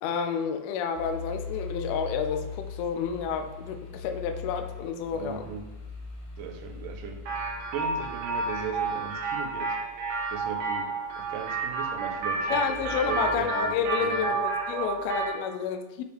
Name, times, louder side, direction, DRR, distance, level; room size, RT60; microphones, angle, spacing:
voice 1, 0.0-5.5 12.5-16.0, left 7 dB, 90° left, 6 dB, 2.2 m, -30 dB
sound 1, 0.9-15.3, left 4 dB, 65° left, 2.0 m, -42 dB
voice 2, 5.1-5.6 6.4-9.8 10.3-14.3, right 6 dB, 85° right, 3 dB, 1.9 m, -38 dB
sound 2, 7.2-15.4, right 3 dB, 65° right, 2.5 m, -30 dB
8.6 x 5.1 x 3.4 m, 1.0 s
omnidirectional pair, 5.0 m